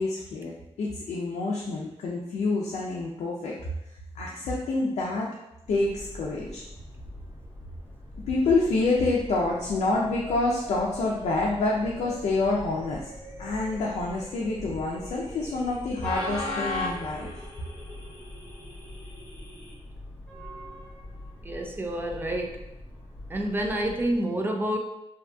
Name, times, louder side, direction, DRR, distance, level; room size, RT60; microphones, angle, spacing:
voice 1, 0.0-3.5 4.1-5.3 5.7-6.6 8.3-13.0 13.4-17.3, left 3 dB, 80° left, -4 dB, 0.4 m, -27 dB
Train, 5.6-24.2, left 2 dB, 10° left, 0.7 m, -40 dB
sound 1, 9.7-19.7, left 1 dB, 40° left, 1.0 m, -45 dB
voice 2, 21.4-22.6 23.3-24.8, right 1 dB, 20° right, 3 dB, 0.4 m, -28 dB
2.7 x 2.5 x 2.2 m, 0.88 s
cardioid pair, 100°, 11 cm